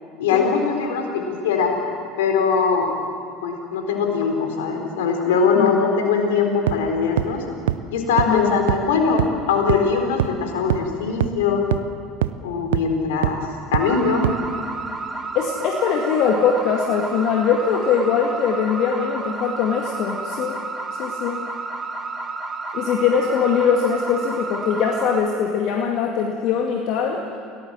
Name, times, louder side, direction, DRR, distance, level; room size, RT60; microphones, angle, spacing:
voice 1, 0.2-1.7 2.2-2.9 3.4-7.4 7.9-11.6 12.4-13.5 13.7-14.3, left 5 dB, 70° left, 3 dB, 4.0 m, -21 dB
sound 1, 6.7-6.8 7.2-7.3 7.7-7.8 8.2-8.3 8.7-8.8 9.2-9.3 9.7-9.8 10.2-10.3 10.7-10.8 11.2-11.3 11.7-11.8 12.2-12.3 12.7-12.8 13.2-13.3 13.7-13.8 14.2-14.3, right 14 dB, 75° right, 0.6 m, -20 dB
voice 2, 8.3-8.6 15.3-20.6 21.0-21.4 22.7-27.2, left 6 dB, 55° left, 1 dB, 2.1 m, -21 dB
sound 2, 13.8-25.2, right 3 dB, 25° right, 3.9 m, -31 dB
28.5 x 18.0 x 7.6 m, 2.3 s
hypercardioid pair, 70°, 0 cm